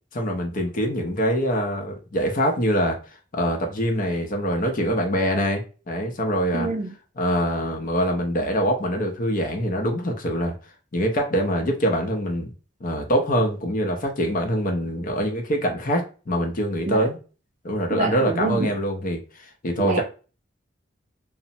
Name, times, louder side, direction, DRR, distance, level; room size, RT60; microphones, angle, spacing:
voice 1, 0.1-3.0 3.3-6.7 7.2-10.5 10.9-12.5 12.8-17.2 17.6-20.0, equal, 45° left, 0.6 m, -24 dB
voice 2, 6.5-6.9 16.9-17.0 17.9-18.7 19.8-20.0, right 3 dB, 40° right, 0.4 m, -26 dB
3.0 x 2.0 x 2.6 m
head